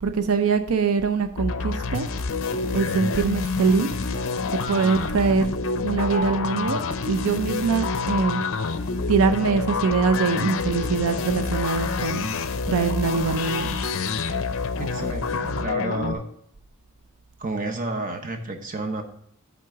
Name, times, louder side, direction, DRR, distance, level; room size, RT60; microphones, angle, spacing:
voice 1, 0.0-2.1 2.7-3.9 4.5-5.5 5.8-6.8 7.0-8.4 9.1-12.2 12.7-13.8, right 5 dB, 80° right, 9 dB, 0.5 m, -23 dB
sound 1, 1.4-16.1, left 4 dB, 65° left, 0.5 m, -27 dB
voice 2, 14.8-16.2 17.4-19.0, right 2 dB, 40° right, 5 dB, 0.9 m, -30 dB
8.5 x 3.7 x 6.7 m, 0.69 s
head